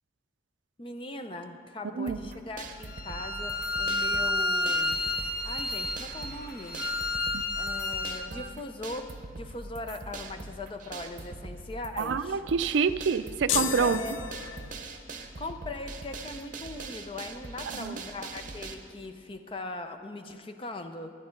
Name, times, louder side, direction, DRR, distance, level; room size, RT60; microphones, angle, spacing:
voice 1, 0.8-5.0 5.4-6.8 7.6-9.1 9.4-12.4 13.8-14.2 15.1-21.1, left 2 dB, 30° left, 7 dB, 0.5 m, -40 dB
sound 1, 2.1-18.7, right 3 dB, 45° right, 0.8 m, -42 dB
Bowed string instrument, 2.9-8.3, left 2 dB, 50° left, 1.0 m, -30 dB
voice 2, 12.0-14.0 17.7-18.0, right 5 dB, 80° right, 13 dB, 0.4 m, -27 dB
sound 2, 13.5-15.0, left 9 dB, 90° left, 0.5 m, -32 dB
11.0 x 9.6 x 5.2 m, 2.4 s
head